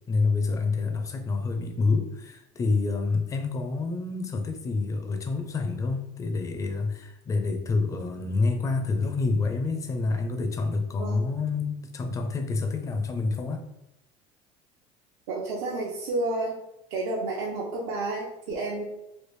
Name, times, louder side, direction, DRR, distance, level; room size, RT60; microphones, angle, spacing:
voice 1, 0.1-13.6, left 3 dB, 25° left, 7 dB, 0.4 m, -28 dB
voice 2, 15.3-16.6 16.9-18.8, right 2 dB, 85° right, -4 dB, 0.7 m, -30 dB
3.2 x 2.4 x 3.1 m, 0.87 s
cardioid pair, 130°, 14 cm